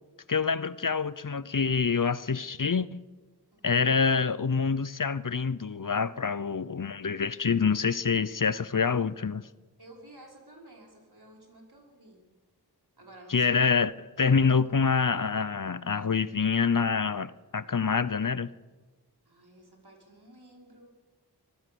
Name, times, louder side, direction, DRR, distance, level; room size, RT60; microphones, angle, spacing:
voice 1, 0.3-3.0 3.6-9.4 13.3-18.5, left 5 dB, 50° left, 17 dB, 0.7 m, -26 dB
voice 2, 3.5-3.8 9.8-12.2 13.0-13.6 19.2-20.9, right 1 dB, 70° right, 0 dB, 5.1 m, -52 dB
24.0 x 16.0 x 6.9 m, 1.3 s
wide cardioid pair, 40°, 40 cm